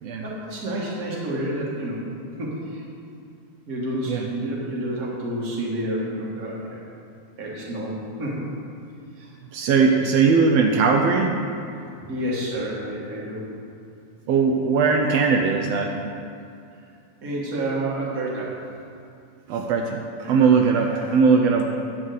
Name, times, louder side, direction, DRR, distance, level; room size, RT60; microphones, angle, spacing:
voice 1, 0.2-2.1 2.4-2.8 3.7-6.8 7.4-8.5 9.2-9.3 11.7-13.5 17.2-18.6 20.2-20.4 20.8-21.1, right 1 dB, 35° right, -4 dB, 1.7 m, -29 dB
voice 2, 9.5-11.3 14.3-15.9 19.5-20.0 20.3-21.6, right 5 dB, 90° right, 2 dB, 1.4 m, -19 dB
10.0 x 4.5 x 7.7 m, 2.4 s
omnidirectional pair, 3.5 m